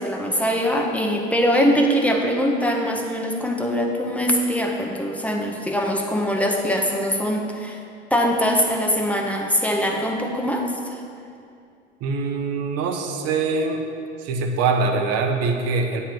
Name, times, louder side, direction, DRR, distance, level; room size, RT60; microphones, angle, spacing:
voice 1, 0.0-7.8 8.1-11.0, equal, 5° left, 1 dB, 0.8 m, -22 dB
voice 2, 12.0-13.8 14.2-16.0, right 4 dB, 45° right, 3 dB, 1.0 m, -23 dB
8.8 x 3.4 x 6.0 m, 2.4 s
hypercardioid pair, 80°, 35 cm